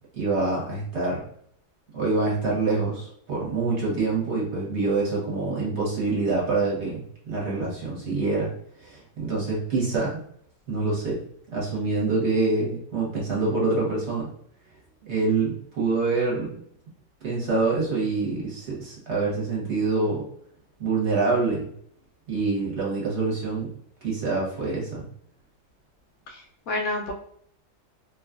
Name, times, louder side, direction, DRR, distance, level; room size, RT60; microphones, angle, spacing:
voice 1, 0.1-1.2 1.9-8.5 8.8-10.2 10.7-11.2 11.5-14.3 15.0-16.5 17.2-20.2 20.8-21.7 22.3-23.7 24.0-25.0, right 3 dB, 50° right, -5 dB, 1.1 m, -26 dB
voice 2, 26.3-27.1, left 2 dB, 70° left, 1 dB, 0.9 m, -30 dB
2.9 x 2.3 x 2.3 m, 0.65 s
omnidirectional pair, 1.7 m